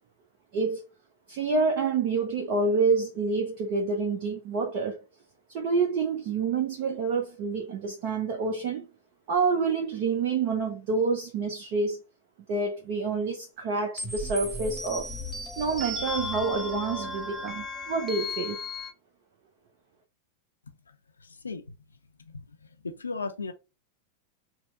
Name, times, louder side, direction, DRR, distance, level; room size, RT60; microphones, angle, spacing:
voice 1, 1.3-5.0 5.5-8.9 9.3-12.0 12.5-15.1 15.6-18.6, right 4 dB, 45° right, 0.7 m, -28 dB
sound 1, 14.0-18.9, left 1 dB, 5° left, 1.1 m, -35 dB
voice 2, 21.2-21.6 22.3-22.4 22.8-23.5, left 4 dB, 75° left, 0.4 m, -35 dB
4.3 x 2.1 x 3.6 m
figure-of-eight pair, 90°, 0 cm